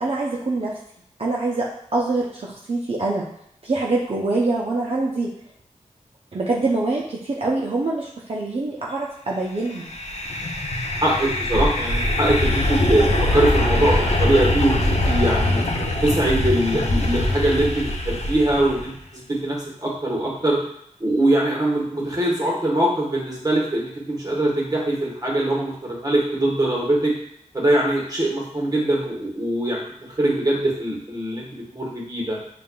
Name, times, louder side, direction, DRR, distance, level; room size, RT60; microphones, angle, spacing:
voice 1, 0.0-0.7 1.2-3.3 3.6-5.3 6.3-9.9, right 2 dB, 50° right, -4 dB, 0.6 m, -24 dB
sound 1, 9.7-18.9, left 1 dB, 55° left, 0.6 m, -22 dB
voice 2, 11.0-13.1 13.3-15.6 16.0-20.6 21.0-27.1 27.5-29.8 30.2-32.4, right 1 dB, 30° right, -4 dB, 1.2 m, -22 dB
5.4 x 2.4 x 2.3 m, 0.70 s
wide cardioid pair, 55°, 13 cm